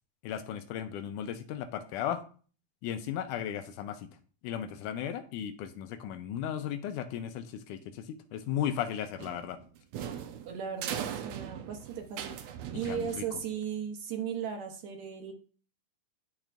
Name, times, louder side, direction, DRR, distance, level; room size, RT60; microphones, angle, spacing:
voice 1, 0.2-2.2 2.8-4.1 4.4-9.6 12.9-13.3, left 9 dB, 80° left, 9 dB, 2.1 m, -35 dB
sound 1, 9.2-13.6, right 9 dB, 90° right, 1.5 m, -39 dB
voice 2, 10.5-15.3, right 7 dB, 70° right, 4 dB, 1.9 m, -37 dB
12.0 x 4.4 x 2.5 m, 0.40 s
omnidirectional pair, 3.7 m